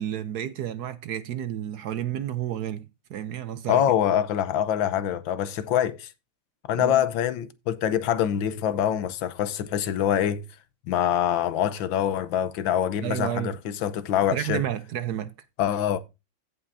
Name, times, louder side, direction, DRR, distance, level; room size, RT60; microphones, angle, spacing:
voice 1, 0.0-3.8 6.8-7.0 13.0-13.6 14.3-15.3, right 11 dB, 65° right, 1.0 m, -31 dB
voice 2, 3.7-6.1 6.7-10.4 10.9-14.6 15.6-16.0, left 10 dB, 80° left, 1.6 m, -25 dB
16.0 x 5.5 x 2.7 m
omnidirectional pair, 2.1 m